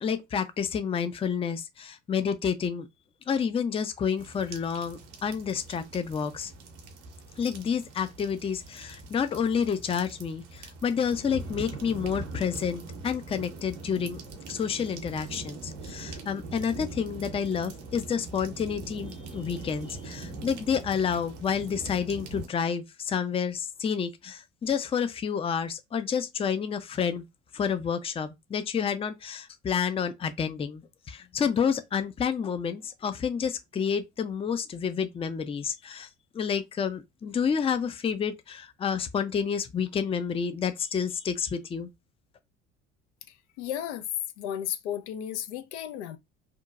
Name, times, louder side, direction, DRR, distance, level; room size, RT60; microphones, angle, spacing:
voice 1, 0.0-2.9 3.3-6.5 7.4-14.2 14.5-27.3 27.5-36.1 36.3-41.9, left 7 dB, 15° left, 0.4 m, -29 dB
sound 1, 4.2-22.5, right 3 dB, 75° right, 0.7 m, -42 dB
voice 2, 43.3-44.1 44.4-46.2, left 10 dB, 75° left, 0.5 m, -34 dB
2.9 x 2.1 x 2.4 m
hypercardioid pair, 55°, 35 cm